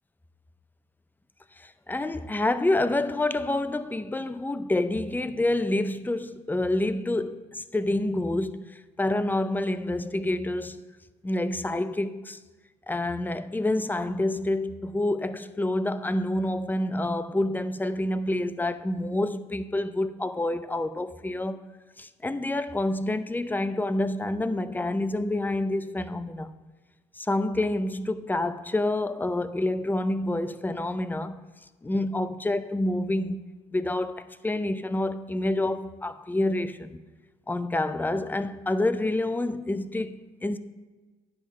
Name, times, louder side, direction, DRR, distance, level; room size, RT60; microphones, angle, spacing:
voice 1, 1.6-10.9 11.2-12.4 12.9-21.7 22.0-26.5 27.2-31.4 31.8-33.4 33.7-37.0 37.5-40.6, left 1 dB, 10° left, 0.5 m, -28 dB
10.0 x 3.6 x 6.2 m
supercardioid pair, 70°, 15 cm